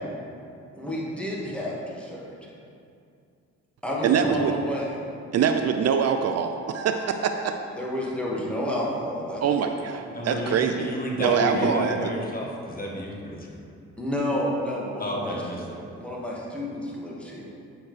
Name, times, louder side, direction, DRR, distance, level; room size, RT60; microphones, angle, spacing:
voice 1, 0.8-2.3 3.8-5.0 7.8-9.9 11.1-11.7 14.0-15.4 16.0-17.4, equal, 5° left, -5 dB, 1.8 m, -30 dB
voice 2, 4.0-4.5 5.3-7.6 9.4-10.9 11.2-12.0, right 7 dB, 55° right, 6 dB, 0.5 m, -24 dB
voice 3, 10.1-13.4 15.0-15.8, equal, 30° left, -1 dB, 1.3 m, -32 dB
8.6 x 6.4 x 3.3 m, 2.5 s
cardioid pair, 90°, 30 cm